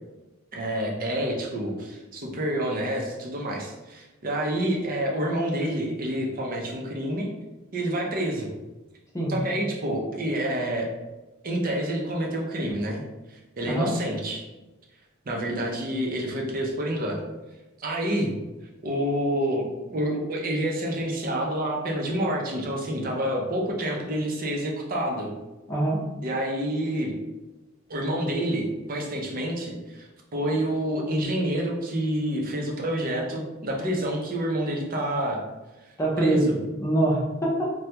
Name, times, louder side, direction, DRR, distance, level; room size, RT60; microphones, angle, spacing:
voice 1, 0.5-7.3 7.7-8.5 9.3-10.9 11.4-13.0 13.3-14.4 15.3-17.2 17.8-18.3 18.8-19.6 19.9-25.3 26.2-27.1 27.9-35.4 36.2-36.5, right 1 dB, 45° right, 0 dB, 0.6 m, -28 dB
voice 2, 13.6-13.9 25.7-26.1 36.0-36.5 36.8-37.7, right 1 dB, 15° left, -4 dB, 0.6 m, -24 dB
3.2 x 2.2 x 2.9 m, 1.1 s
head